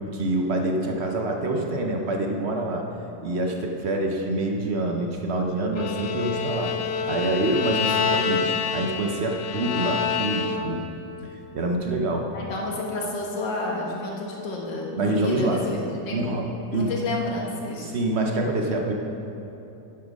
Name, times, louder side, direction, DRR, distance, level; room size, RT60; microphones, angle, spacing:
voice 1, 0.1-2.9 3.2-6.7 7.1-10.9 11.5-12.3 15.0-15.6 16.1-16.9 17.9-18.9, right 2 dB, 50° right, 2 dB, 0.8 m, -26 dB
Bowed string instrument, 5.7-10.9, left 6 dB, 65° left, 0.9 m, -27 dB
voice 2, 12.3-15.8 16.1-16.3 16.7-17.9, left 2 dB, 85° left, -2 dB, 2.1 m, -30 dB
11.5 x 7.2 x 5.2 m, 3.0 s
omnidirectional pair, 1.9 m